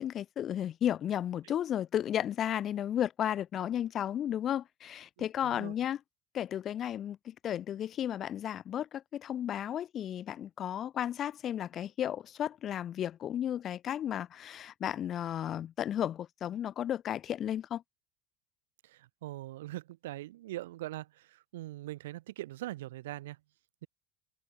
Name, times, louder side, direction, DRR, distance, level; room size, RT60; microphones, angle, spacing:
voice 1, 0.0-6.0 6.3-17.8, left 10 dB, 40° left, 5.4 m, -34 dB
voice 2, 5.2-5.7 18.9-21.1 21.5-23.4, right 16 dB, 65° right, 4.3 m, -41 dB
open air
figure-of-eight pair, 70°, 0 cm